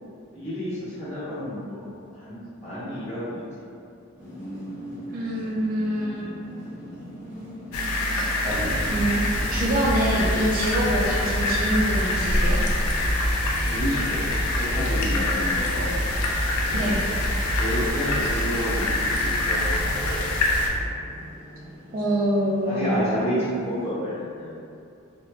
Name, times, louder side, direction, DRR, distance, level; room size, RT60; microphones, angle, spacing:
voice 1, 0.3-1.8 2.1-3.4 13.7-15.9 16.7-17.0 17.6-20.2 22.6-24.6, equal, 30° left, -13 dB, 0.9 m, -30 dB
sound 1, 4.2-23.9, equal, 5° right, 0.7 m, -42 dB
voice 2, 5.1-6.3 8.1-8.3 8.9-9.2 9.5-12.6 16.7-17.0 21.9-22.9, right 1 dB, 40° right, -4 dB, 0.3 m, -25 dB
sound 2, 7.7-20.7, left 1 dB, 85° left, 0.4 m, -26 dB
Conversation, 8.4-20.8, equal, 70° right, 0.7 m, -29 dB
3.0 x 2.0 x 2.4 m, 2.5 s
head